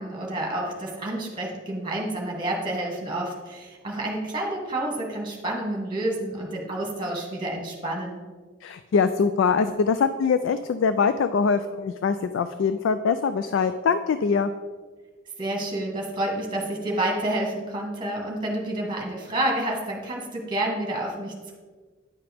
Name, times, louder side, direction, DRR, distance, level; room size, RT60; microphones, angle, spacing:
voice 1, 0.0-8.2 15.4-21.5, right 1 dB, 25° right, -1 dB, 1.5 m, -29 dB
voice 2, 8.6-14.5, left 5 dB, 75° left, 11 dB, 0.3 m, -23 dB
9.7 x 5.8 x 3.5 m, 1.4 s
head